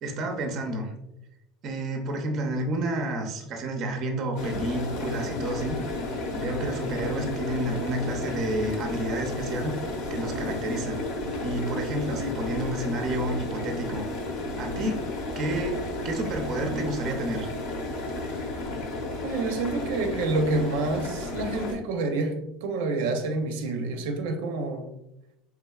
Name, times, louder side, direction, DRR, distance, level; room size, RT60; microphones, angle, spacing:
voice 1, 0.0-0.9 1.6-6.0 6.3-9.7 10.1-11.0 11.4-14.0 14.6-15.1 15.4-17.5, right 1 dB, 30° right, 4 dB, 0.5 m, -30 dB
sound 1, 4.4-21.7, left 2 dB, 60° left, 0.8 m, -32 dB
voice 2, 19.2-24.9, right 2 dB, 90° right, 5 dB, 0.6 m, -28 dB
4.3 x 3.5 x 2.3 m, 0.89 s
cardioid pair, 175°, 0 cm